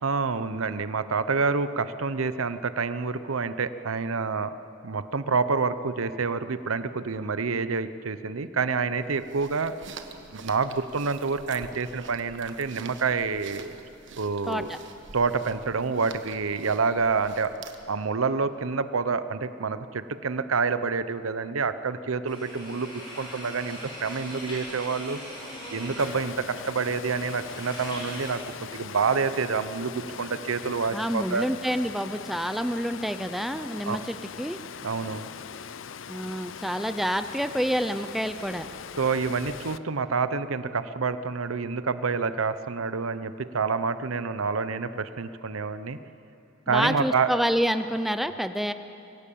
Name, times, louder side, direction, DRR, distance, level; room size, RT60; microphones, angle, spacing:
voice 1, 0.0-4.5 4.8-9.8 10.3-13.7 14.2-14.7 15.1-17.5 17.9-25.2 25.7-31.5 33.9-34.0 34.8-35.3 39.0-46.0 46.7-47.3, right 4 dB, 85° right, 12 dB, 0.8 m, -28 dB
sound 1, 9.0-18.0, right 4 dB, 60° right, 1.4 m, -46 dB
voice 2, 14.5-14.8 30.9-34.6 36.1-38.7 46.7-48.7, equal, ahead, 10 dB, 0.5 m, -28 dB
sound 2, 22.3-28.3, equal, 20° left, 6.7 m, -41 dB
Water, 26.0-39.8, left 7 dB, 65° left, 0.6 m, -41 dB
24.0 x 15.5 x 8.5 m, 2.7 s
head